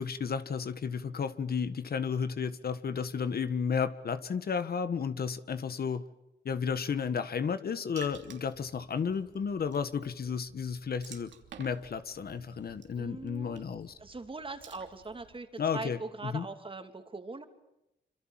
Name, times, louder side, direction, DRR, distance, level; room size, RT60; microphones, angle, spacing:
voice 1, 0.0-6.0 6.4-11.3 11.6-13.9 15.6-16.5, left 6 dB, 60° left, 11 dB, 1.6 m, -33 dB
Water / Splash splatter, 8.0-15.4, right 7 dB, 90° right, 3.0 m, -54 dB
voice 2, 13.0-13.6 14.0-15.5 15.7-17.4, right 3 dB, 30° right, 7 dB, 2.9 m, -41 dB
26.5 x 26.0 x 7.6 m, 0.89 s
cardioid pair, 100°, 18 cm